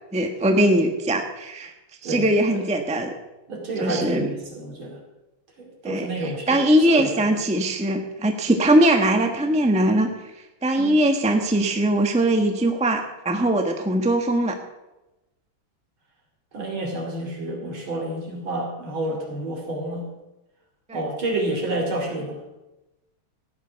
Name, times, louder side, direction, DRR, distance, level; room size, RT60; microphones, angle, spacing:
voice 1, 0.1-1.7 2.0-3.1 3.8-4.3 5.8-10.1 10.6-14.6 20.9-21.0, right 1 dB, 5° right, 4 dB, 0.7 m, -21 dB
voice 2, 2.0-2.6 3.5-5.0 5.6-6.6 6.9-7.1 10.7-11.0 16.5-20.1 20.9-22.4, right 1 dB, 65° right, 0 dB, 3.7 m, -29 dB
15.0 x 9.6 x 5.8 m, 0.98 s
omnidirectional pair, 2.4 m